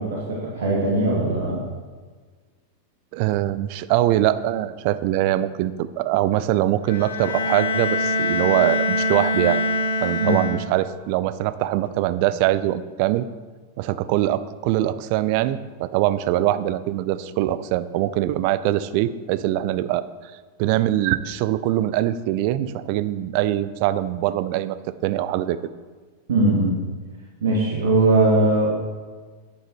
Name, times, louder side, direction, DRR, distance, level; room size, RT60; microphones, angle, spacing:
voice 1, 0.0-1.6 10.2-10.4 26.3-26.8 27.4-28.7, right 2 dB, 65° right, -4 dB, 2.7 m, -20 dB
voice 2, 3.1-9.6 10.0-13.3 13.8-20.3 20.6-25.6, right 13 dB, 45° right, 15 dB, 0.6 m, -23 dB
Bowed string instrument, 6.9-11.0, left 2 dB, 65° left, 1.5 m, -24 dB
13.0 x 10.5 x 4.5 m, 1.4 s
figure-of-eight pair, 90°, 0 cm